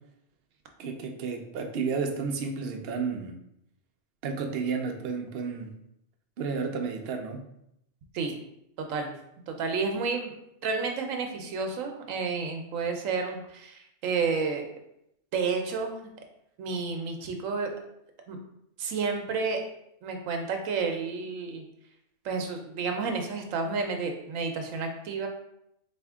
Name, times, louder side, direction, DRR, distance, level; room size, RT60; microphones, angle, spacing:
voice 1, 0.8-3.4 4.2-5.7 6.4-7.4, right 5 dB, 60° right, 3 dB, 0.7 m, -32 dB
voice 2, 9.5-10.3 10.6-14.7 15.3-16.1 16.6-17.8 18.3-18.4 18.8-19.6 20.0-21.6 22.2-25.3, right 4 dB, 85° right, 4 dB, 1.0 m, -30 dB
4.3 x 2.7 x 3.5 m, 0.78 s
omnidirectional pair, 1.3 m